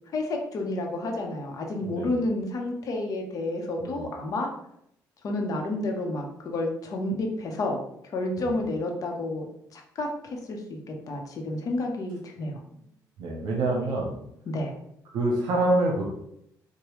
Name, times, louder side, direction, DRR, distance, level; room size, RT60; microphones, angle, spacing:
voice 1, 0.1-4.5 5.2-7.8 8.1-9.5 9.7-10.8 11.1-12.6 14.5-14.8, left 2 dB, 55° left, 2 dB, 0.8 m, -30 dB
voice 2, 1.9-2.2 3.8-4.1 8.4-8.6 13.2-14.1 15.1-16.0, right 2 dB, 80° right, -1 dB, 0.8 m, -26 dB
4.8 x 2.2 x 3.0 m, 0.74 s
cardioid pair, 110°, 7 cm